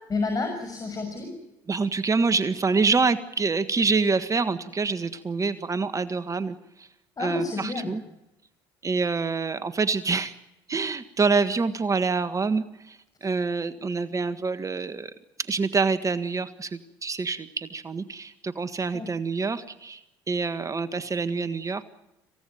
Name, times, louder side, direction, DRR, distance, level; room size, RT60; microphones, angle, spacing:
voice 1, 0.1-1.3 7.2-7.9 18.9-19.1, left 3 dB, 35° left, 4 dB, 6.5 m, -29 dB
voice 2, 1.7-6.9 7.2-8.0 8.8-10.3 10.7-15.1 15.5-20.0 20.3-21.8, right 4 dB, 30° right, 11 dB, 1.6 m, -26 dB
26.5 x 17.0 x 9.3 m, 0.91 s
hypercardioid pair, 70°, 11 cm